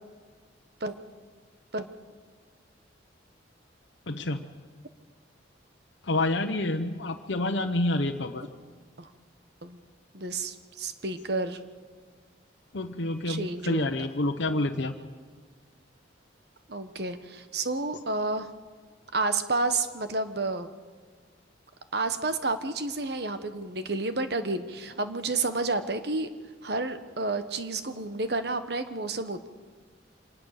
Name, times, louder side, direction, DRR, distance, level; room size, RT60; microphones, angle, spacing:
voice 1, 4.1-4.5 6.0-8.5 12.7-14.9, left 2 dB, 70° left, 3 dB, 1.0 m, -28 dB
voice 2, 10.1-11.6 13.2-14.1 16.7-18.5 19.1-20.7 21.9-26.3 26.6-29.5, right 3 dB, 55° right, 10 dB, 1.2 m, -30 dB
25.5 x 19.5 x 6.7 m, 1.5 s
head